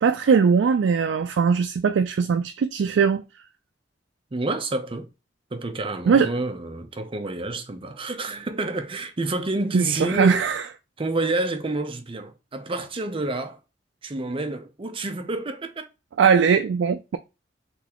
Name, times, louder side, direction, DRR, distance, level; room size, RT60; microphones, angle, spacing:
voice 1, 0.0-3.2 6.1-6.3 9.7-10.6 16.2-17.2, right 6 dB, 85° right, 0.3 m, -20 dB
voice 2, 4.3-5.1 5.5-10.5 11.0-13.6 14.0-15.9, right 2 dB, 30° right, 0.5 m, -29 dB
4.0 x 3.3 x 2.9 m
head